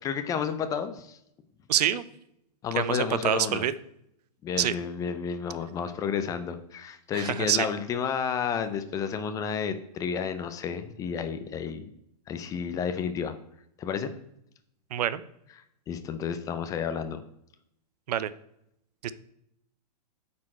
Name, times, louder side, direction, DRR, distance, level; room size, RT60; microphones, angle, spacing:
voice 1, 0.0-1.2 2.6-3.6 4.4-11.9 12.3-13.4 13.8-14.1 15.9-17.2, left 7 dB, 15° left, 9 dB, 0.4 m, -31 dB
voice 2, 1.7-2.0 2.8-3.7 4.6-4.7 7.1-7.7 14.9-15.2 18.1-18.3 19.0-19.1, right 11 dB, 70° right, 16 dB, 0.6 m, -26 dB
9.0 x 4.3 x 4.2 m, 0.76 s
hypercardioid pair, 145°, 21 cm